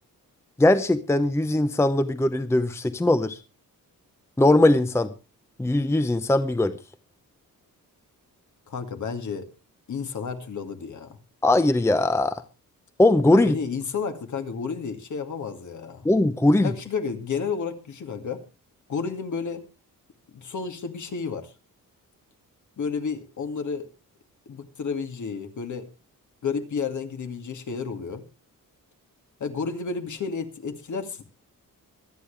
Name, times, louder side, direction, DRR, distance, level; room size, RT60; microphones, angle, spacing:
voice 1, 0.6-3.4 4.4-5.1 5.6-6.7 11.4-12.4 13.0-13.6 16.0-16.7, left 2 dB, 10° left, 0.7 m, -20 dB
voice 2, 8.7-9.5 9.9-11.2 13.3-16.1 16.6-18.4 18.9-19.6 20.3-21.5 22.8-23.9 24.5-25.9 26.4-28.2 29.4-31.2, left 5 dB, 55° left, 2.3 m, -31 dB
25.0 x 9.5 x 3.3 m
wide cardioid pair, 170°, 35 cm